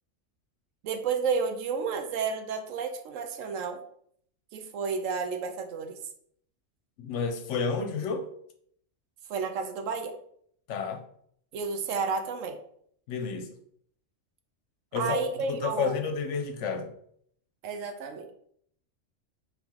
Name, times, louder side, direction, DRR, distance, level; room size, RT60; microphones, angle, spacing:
voice 1, 0.8-3.8 4.5-6.0 9.3-10.1 11.5-12.6 14.9-16.0 17.6-18.3, right 5 dB, 80° right, 7 dB, 1.0 m, -31 dB
voice 2, 7.0-8.3 10.7-11.0 13.1-13.6 14.9-15.2 15.5-16.9, left 5 dB, 75° left, 6 dB, 0.9 m, -30 dB
3.6 x 3.4 x 3.1 m, 0.66 s
omnidirectional pair, 1.3 m